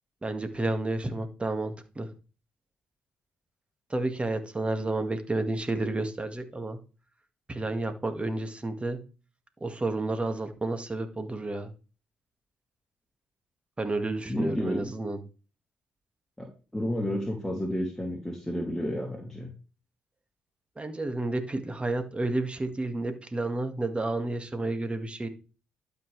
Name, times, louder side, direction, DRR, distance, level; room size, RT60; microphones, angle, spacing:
voice 1, 0.2-2.1 3.9-6.8 7.5-9.0 9.6-11.7 13.8-15.2 20.8-25.3, right 2 dB, 25° right, 7 dB, 1.9 m, -31 dB
voice 2, 14.2-14.8 16.4-19.5, equal, 5° left, -1 dB, 2.6 m, -31 dB
12.0 x 5.5 x 3.3 m, 0.34 s
hypercardioid pair, 50°, 5 cm